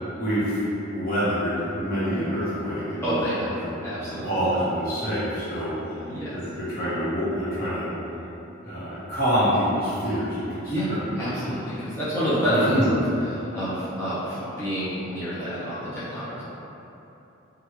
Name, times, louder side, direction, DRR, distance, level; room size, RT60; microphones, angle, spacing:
voice 1, 0.2-3.2 3.5-3.8 4.2-6.0 6.3-7.9 8.6-11.0 12.5-12.9, equal, 50° left, -11 dB, 1.1 m, -26 dB
voice 2, 3.0-4.5 6.1-6.4 10.7-10.9 11.2-13.0 13.3-16.4, equal, 10° left, -14 dB, 0.6 m, -28 dB
3.1 x 2.3 x 3.1 m, 3.0 s
head